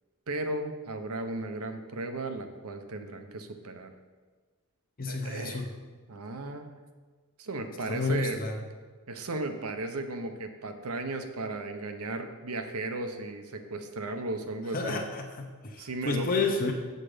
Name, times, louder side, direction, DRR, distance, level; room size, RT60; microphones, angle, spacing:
voice 1, 0.3-3.9 5.1-5.7 6.1-6.7 7.4-8.4 9.1-15.0 15.8-16.5, right 2 dB, 75° right, 6 dB, 0.9 m, -35 dB
voice 2, 5.0-5.7 7.9-8.6 14.7-16.7, left 3 dB, 40° left, 1 dB, 0.8 m, -30 dB
7.7 x 6.6 x 5.0 m, 1.4 s
head